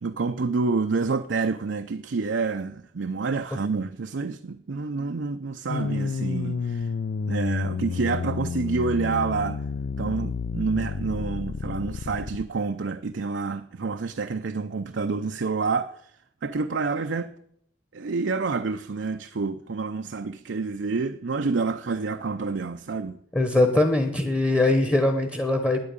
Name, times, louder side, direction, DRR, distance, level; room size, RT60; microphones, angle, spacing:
voice 1, 0.0-6.9 7.3-9.6 10.0-16.1 16.4-17.3 17.9-23.2, right 4 dB, 70° right, 0.5 m, -28 dB
sound 1, 5.7-12.4, left 5 dB, 60° left, 0.4 m, -30 dB
voice 2, 23.3-25.8, left 2 dB, 10° left, 1.0 m, -21 dB
9.7 x 8.6 x 8.8 m
head